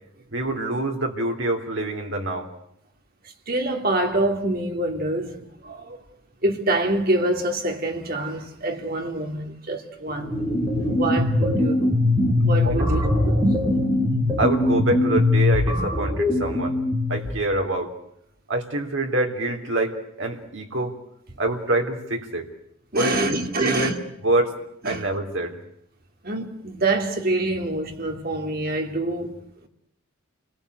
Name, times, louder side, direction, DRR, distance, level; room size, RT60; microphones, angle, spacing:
voice 1, 0.3-2.5 12.6-13.1 14.4-16.8 17.1-17.9 18.5-20.9 21.4-22.5 22.9-23.9 24.2-24.5 24.8-25.5, right 2 dB, 65° right, 3.4 m, -26 dB
voice 2, 3.2-6.0 6.4-10.4 10.9-12.0 12.4-13.3 22.9-23.9 24.8-25.0 26.2-29.7, right 2 dB, 45° right, 2.8 m, -26 dB
sound 1, 10.1-17.2, left 2 dB, 15° right, 7.5 m, -21 dB
29.0 x 21.0 x 8.1 m
head